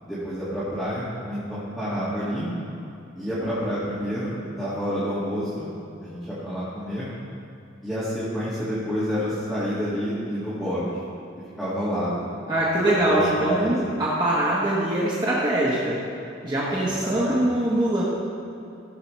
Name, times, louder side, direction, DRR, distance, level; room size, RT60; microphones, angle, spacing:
voice 1, 0.0-2.5 3.2-5.7 6.0-7.1 7.8-11.0 11.6-12.2 13.1-13.7 16.7-17.4, equal, ahead, -12 dB, 1.8 m, -29 dB
voice 2, 12.5-16.0 16.4-18.0, right 1 dB, 25° right, -6 dB, 1.2 m, -23 dB
15.5 x 7.4 x 3.1 m, 2.7 s
head